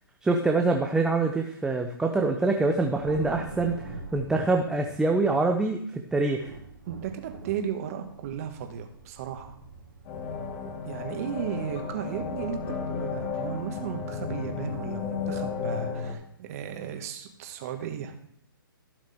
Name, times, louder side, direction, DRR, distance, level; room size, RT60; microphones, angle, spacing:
voice 1, 0.2-6.5, right 3 dB, 5° right, 3 dB, 0.6 m, -25 dB
Thunder, 2.5-5.6 6.1-11.4, right 4 dB, 80° right, 3.3 m, -44 dB
voice 2, 6.9-9.6 10.8-18.2, right 8 dB, 40° right, 5 dB, 1.8 m, -35 dB
sound 1, 10.0-16.1, left 5 dB, 30° left, 2.4 m, -33 dB
15.5 x 6.3 x 3.5 m, 0.67 s
hypercardioid pair, 140°, 12 cm